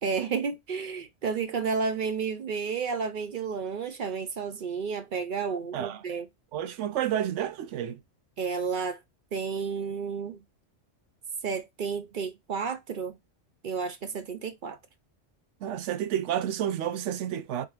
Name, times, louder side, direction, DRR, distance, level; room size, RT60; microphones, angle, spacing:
voice 1, 0.0-6.3 8.4-9.0 9.3-10.4 11.4-13.2 13.6-14.8, right 5 dB, 55° right, 0.6 m, -31 dB
voice 2, 6.5-8.0 15.6-17.7, right 10 dB, 80° right, 0.9 m, -30 dB
3.7 x 3.1 x 3.2 m
omnidirectional pair, 1.2 m